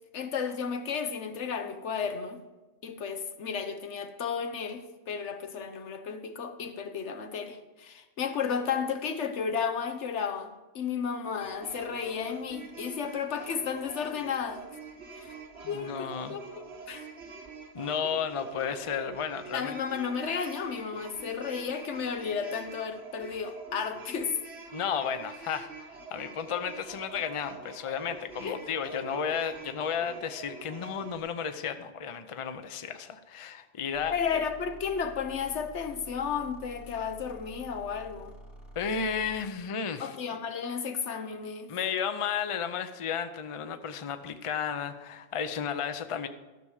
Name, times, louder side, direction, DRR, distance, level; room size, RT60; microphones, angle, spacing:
voice 1, 0.1-2.4 2.8-14.6 15.2-15.3 15.7-17.1 19.5-24.4 28.4-28.6 34.1-38.3 40.0-41.7, left 6 dB, 85° left, 8 dB, 1.2 m, -33 dB
sound 1, 11.4-31.2, right 4 dB, 70° right, 1.7 m, -46 dB
voice 2, 15.6-16.4 17.7-19.8 24.7-34.1 38.8-40.2 41.7-46.3, left 7 dB, 35° left, 9 dB, 0.6 m, -33 dB
sound 2, 33.9-39.5, right 1 dB, 55° left, 2.1 m, -49 dB
13.0 x 6.7 x 4.9 m, 1.1 s
omnidirectional pair, 1.2 m